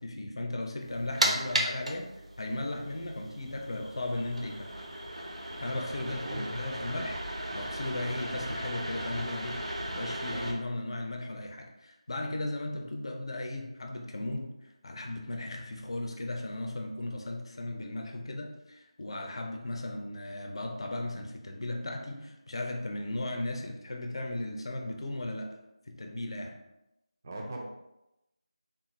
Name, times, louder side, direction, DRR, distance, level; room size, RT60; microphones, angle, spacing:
voice 1, 0.0-2.1 2.4-4.7 5.6-7.2 7.5-25.6 25.9-26.6, left 2 dB, 55° left, 3 dB, 0.5 m, -36 dB
sound 1, 0.8-10.5, right 1 dB, 80° right, 0.7 m, -36 dB
voice 2, 6.0-6.5 27.2-27.6, right 1 dB, 25° right, 0 dB, 0.4 m, -39 dB
3.4 x 2.5 x 3.0 m, 0.92 s
figure-of-eight pair, 170°, 3 cm